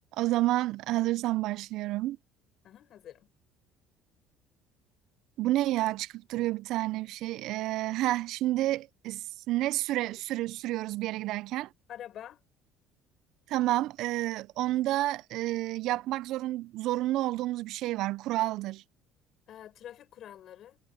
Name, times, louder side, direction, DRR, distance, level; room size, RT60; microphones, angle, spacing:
voice 1, 0.1-2.2 5.4-11.7 13.5-18.8, right 16 dB, 60° right, 0.4 m, -30 dB
voice 2, 2.6-3.3 11.9-12.4 19.5-20.8, left 11 dB, 45° left, 7.3 m, -46 dB
cardioid pair, 150°, 0 cm